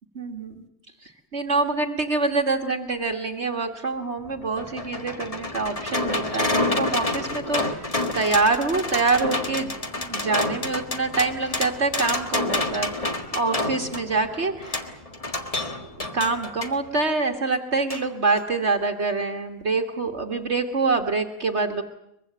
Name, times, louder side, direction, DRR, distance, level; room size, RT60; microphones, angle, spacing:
voice 1, 0.2-0.7 1.0-7.8 8.1-13.0 13.3-15.0 16.1-21.8, right 3 dB, 50° right, 4 dB, 1.8 m, -25 dB
sound 1, 4.2-16.8 17.9-18.0 18.4-18.5, left 2 dB, 25° left, 1.6 m, -28 dB
23.5 x 22.5 x 7.9 m, 0.80 s
omnidirectional pair, 1.6 m